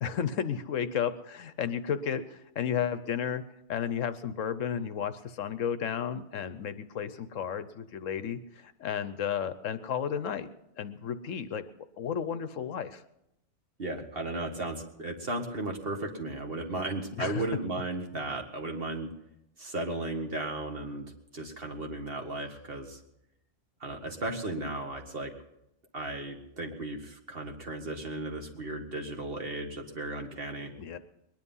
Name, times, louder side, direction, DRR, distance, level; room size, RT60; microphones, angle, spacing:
voice 1, 0.0-3.4 3.7-10.5 10.8-11.6 12.0-13.0 17.2-17.4 30.8-31.0, left 8 dB, 70° left, 12 dB, 1.1 m, -33 dB
voice 2, 13.8-19.1 19.6-21.1 21.3-23.0 23.8-25.3 25.9-30.7, right 2 dB, 45° right, 3 dB, 1.8 m, -35 dB
21.5 x 10.5 x 5.5 m, 0.83 s
omnidirectional pair, 1.4 m